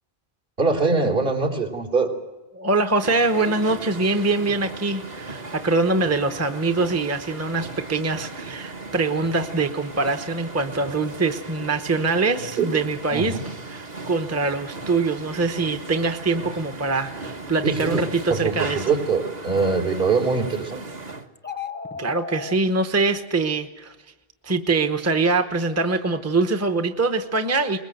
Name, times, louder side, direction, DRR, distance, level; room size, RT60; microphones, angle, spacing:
voice 1, 0.6-2.1 12.6-12.7 13.1-13.5 17.6-18.0 18.3-20.8, right 4 dB, 65° right, -2 dB, 3.8 m, -23 dB
voice 2, 2.5-13.4 13.7-18.9 22.0-23.9 24.4-27.8, right 3 dB, 15° right, 7 dB, 0.9 m, -23 dB
sound 1, 3.0-21.3, right 3 dB, 45° right, 1.4 m, -37 dB
sound 2, 21.4-22.6, left 6 dB, 10° left, 0.8 m, -33 dB
22.0 x 21.0 x 7.9 m, 1.1 s
omnidirectional pair, 1.0 m